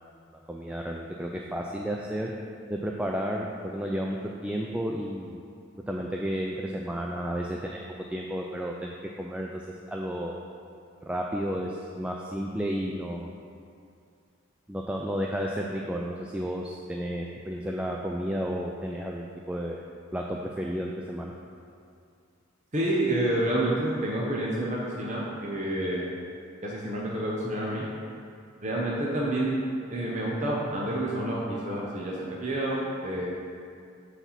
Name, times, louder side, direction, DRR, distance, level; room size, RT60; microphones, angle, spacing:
voice 1, 0.3-2.3 2.7-5.4 5.9-7.8 8.1-9.6 9.9-10.3 11.0-13.4 14.7-19.8 20.1-21.3, equal, 5° right, -1 dB, 0.3 m, -32 dB
voice 2, 22.7-26.1 26.6-27.8 28.6-29.6 29.9-33.3, right 1 dB, 35° right, -5 dB, 0.9 m, -28 dB
8.1 x 4.2 x 5.7 m, 2.4 s
head